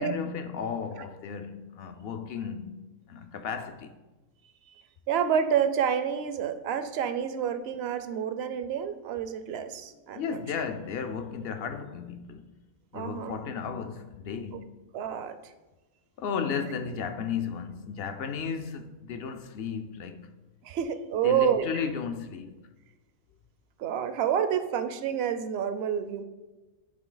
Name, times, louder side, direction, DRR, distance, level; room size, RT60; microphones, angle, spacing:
voice 1, 0.0-2.8 3.1-4.0 10.1-12.5 12.9-14.7 16.2-20.3 21.2-22.5, left 6 dB, 65° left, 0.6 m, -34 dB
voice 2, 5.1-10.4 12.9-13.4 14.5-14.6 14.9-15.5 20.6-21.7 23.8-26.2, right 8 dB, 60° right, 0.7 m, -28 dB
9.6 x 3.9 x 3.9 m
omnidirectional pair, 1.4 m